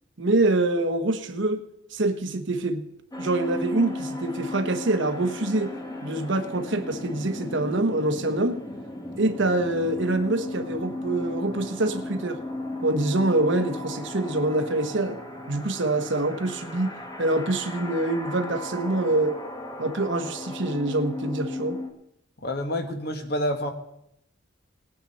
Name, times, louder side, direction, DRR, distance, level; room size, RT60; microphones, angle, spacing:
voice 1, 0.2-1.7 1.9-2.8 3.2-5.8 6.0-8.6 9.2-12.4 12.8-15.2 15.5-19.4 19.8-21.8, right 2 dB, 60° right, 8 dB, 1.1 m, -25 dB
sound 1, 3.1-21.9, left 1 dB, 20° left, 1.3 m, -36 dB
voice 2, 22.4-23.7, left 1 dB, 50° left, 5 dB, 1.5 m, -28 dB
19.0 x 9.1 x 4.2 m, 0.78 s
head